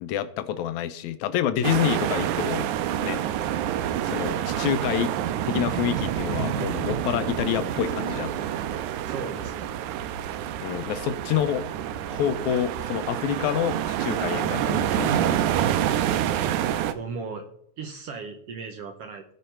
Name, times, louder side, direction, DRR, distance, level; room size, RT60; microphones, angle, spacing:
voice 1, 0.0-2.7 3.0-3.2 4.0-5.1 5.5-8.3 10.6-11.7 12.1-15.7, left 10 dB, 80° left, 1.9 m, -27 dB
sound 1, 1.6-16.9, right 11 dB, 85° right, 2.1 m, -27 dB
voice 2, 9.0-9.7 16.9-17.4 17.8-19.2, right 4 dB, 65° right, 1.6 m, -36 dB
16.5 x 5.6 x 4.5 m
omnidirectional pair, 3.6 m